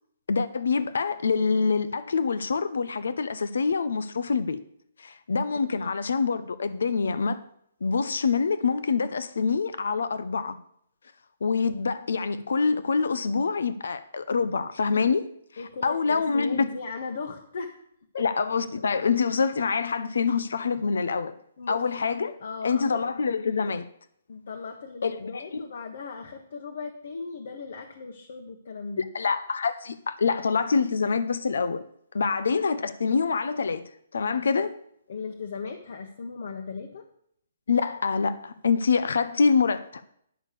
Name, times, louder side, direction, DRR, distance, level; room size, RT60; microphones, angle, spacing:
voice 1, 0.3-4.6 5.0-7.5 7.8-10.6 11.4-15.3 15.8-16.7 18.2-21.3 21.7-22.4 22.6-23.9 25.0-25.7 29.0-31.8 32.1-34.8 37.7-40.1, left 5 dB, 85° left, 14 dB, 0.8 m, -26 dB
voice 2, 15.6-17.8 18.1-18.2 21.6-21.8 22.4-23.1 24.3-29.1 32.2-32.3 35.1-37.0, left 4 dB, 55° left, 4 dB, 1.3 m, -37 dB
11.0 x 6.4 x 6.7 m, 0.69 s
hypercardioid pair, 175°, 0 cm